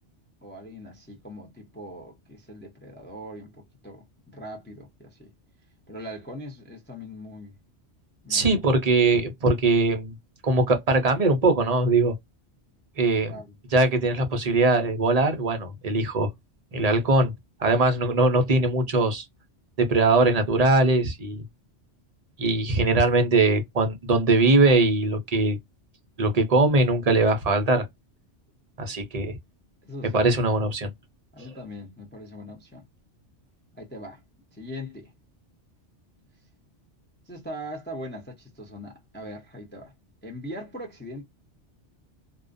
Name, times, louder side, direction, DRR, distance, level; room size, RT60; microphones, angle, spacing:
voice 1, 0.4-5.3 5.9-7.5 8.2-8.6 13.3-13.5 29.8-30.3 31.3-32.8 33.8-34.2 34.5-35.1 37.3-39.9 40.2-41.2, equal, 15° left, 0.4 m, -40 dB
voice 2, 8.3-10.1 10.4-12.1 13.0-13.4 13.7-16.3 16.7-17.3 17.6-19.2 19.8-21.4 22.4-25.6 26.2-27.9 28.8-29.3 30.1-30.9, right 2 dB, 45° right, 0.5 m, -21 dB
2.3 x 2.1 x 2.4 m
omnidirectional pair, 1.2 m